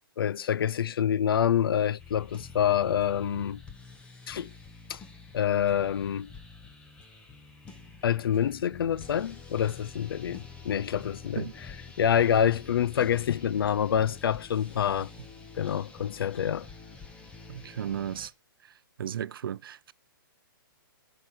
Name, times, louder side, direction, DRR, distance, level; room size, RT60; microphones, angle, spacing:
voice 1, 0.2-3.6 4.3-4.5 4.9-5.0 5.3-6.3 8.0-15.1 15.6-16.7, left 9 dB, 80° left, 0.4 m, -27 dB
sound 1, 2.0-18.3, left 4 dB, 10° left, 1.0 m, -48 dB
voice 2, 17.5-18.3 19.0-19.9, right 9 dB, 75° right, 0.5 m, -34 dB
12.0 x 5.8 x 4.5 m
hypercardioid pair, 155°, 12 cm